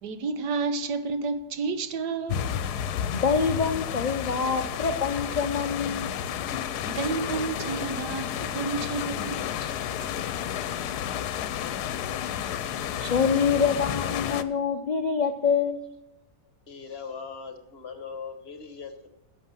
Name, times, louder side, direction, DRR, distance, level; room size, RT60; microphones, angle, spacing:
voice 1, 0.0-2.5 6.9-9.4, right 4 dB, 80° right, 1.5 m, -30 dB
sound 1, 2.3-14.4, left 9 dB, 80° left, 1.2 m, -31 dB
voice 2, 3.1-6.1 13.0-15.8, left 6 dB, 65° left, 0.4 m, -25 dB
voice 3, 16.7-19.1, left 5 dB, 45° left, 1.2 m, -40 dB
11.0 x 7.0 x 7.4 m
omnidirectional pair, 1.7 m